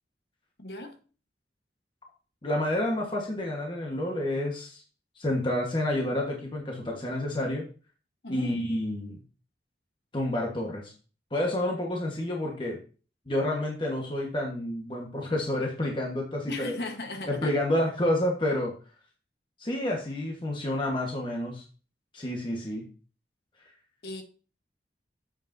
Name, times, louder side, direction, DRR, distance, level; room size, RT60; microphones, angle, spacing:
voice 1, 0.6-1.0 8.2-8.5 16.5-17.5 24.0-24.2, left 2 dB, 65° left, 1.1 m, -36 dB
voice 2, 2.4-4.8 5.2-7.6 8.3-9.2 10.1-10.9 11.3-12.8 13.3-16.8 17.3-18.7 19.6-21.6 22.1-22.8 23.6-23.7, left 1 dB, 30° left, 1.2 m, -29 dB
8.3 x 7.4 x 2.6 m
head